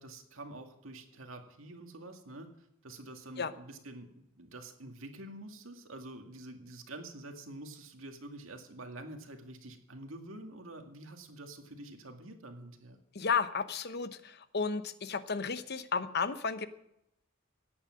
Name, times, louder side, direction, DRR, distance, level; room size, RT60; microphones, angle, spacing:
voice 1, 0.0-13.0, right 2 dB, 85° right, 5 dB, 2.2 m, -47 dB
voice 2, 13.1-16.7, left 5 dB, 55° left, 12 dB, 0.9 m, -33 dB
17.0 x 8.9 x 7.7 m, 0.81 s
head